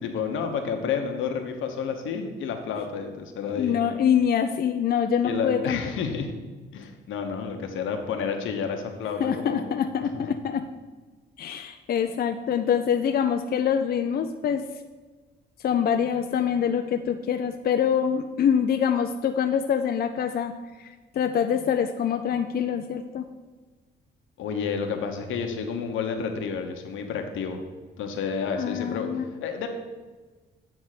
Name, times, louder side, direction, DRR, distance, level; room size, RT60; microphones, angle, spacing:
voice 1, 0.0-3.8 5.2-6.3 6.7-9.8 10.1-10.3 24.4-27.6 28.0-29.7, left 6 dB, 80° left, 5 dB, 1.1 m, -30 dB
voice 2, 3.5-5.8 9.2-10.6 11.4-14.6 15.6-20.5 20.8-23.2 28.5-29.2, left 8 dB, 50° left, 6 dB, 0.5 m, -25 dB
8.8 x 3.5 x 6.6 m, 1.4 s
cardioid pair, 90°, 20 cm